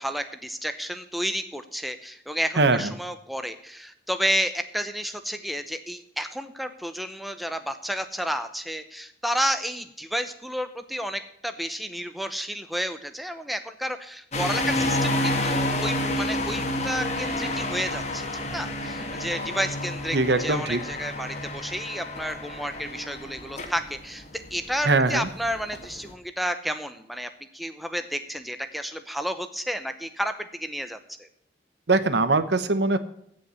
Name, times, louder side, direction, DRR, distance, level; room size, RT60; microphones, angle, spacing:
voice 1, 0.0-31.3, equal, ahead, 8 dB, 0.7 m, -31 dB
sound 1, 14.3-26.1, left 1 dB, 35° left, 1.6 m, -29 dB
voice 2, 20.1-20.8 24.9-25.3 31.9-33.0, right 3 dB, 70° right, 12 dB, 1.0 m, -21 dB
16.0 x 5.5 x 6.9 m, 0.75 s
head